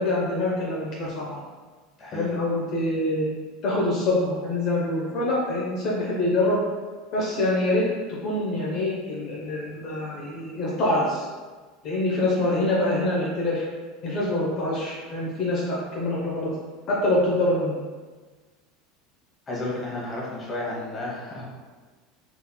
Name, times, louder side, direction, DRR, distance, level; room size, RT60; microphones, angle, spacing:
voice 1, 0.0-1.4 2.1-3.2 3.6-6.6 7.1-7.8 8.1-11.3 11.8-13.6 14.0-16.5 16.9-17.8, left 1 dB, 40° left, -5 dB, 0.8 m, -25 dB
voice 2, 2.0-2.3 19.5-21.4, left 2 dB, 20° left, -5 dB, 1.1 m, -32 dB
4.2 x 3.9 x 2.2 m, 1.4 s
supercardioid pair, 160°, 0 cm